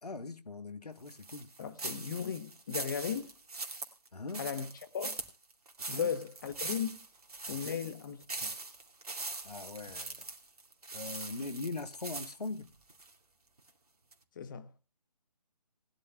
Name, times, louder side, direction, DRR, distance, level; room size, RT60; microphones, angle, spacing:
voice 1, 0.0-1.5 4.1-4.5 5.9-6.1 7.5-7.8 9.4-10.2 10.9-12.7, left 3 dB, 70° left, 1.6 m, -41 dB
sound 1, 1.1-13.1 13.6-13.7 14.1-14.2, right 3 dB, 65° right, 2.4 m, -42 dB
voice 2, 1.6-3.3 4.4-5.2 5.9-7.0 7.5-8.5 14.4-14.7, left 7 dB, 30° left, 1.2 m, -37 dB
19.5 x 12.0 x 2.4 m
figure-of-eight pair, 145°, 20 cm